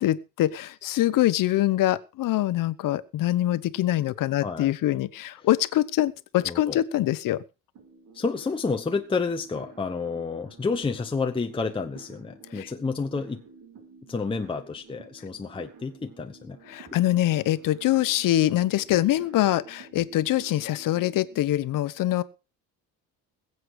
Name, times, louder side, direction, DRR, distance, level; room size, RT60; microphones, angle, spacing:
voice 1, 0.0-7.4 12.5-12.7 16.7-22.2, left 14 dB, 60° left, 16 dB, 1.0 m, -24 dB
voice 2, 4.4-4.7 6.4-6.8 8.1-13.4 14.1-16.6, left 4 dB, 15° left, 5 dB, 0.9 m, -30 dB
sound 1, 7.7-21.5, right 5 dB, 65° right, 5.3 m, -51 dB
21.0 x 8.1 x 4.8 m, 0.32 s
cardioid pair, 145°, 36 cm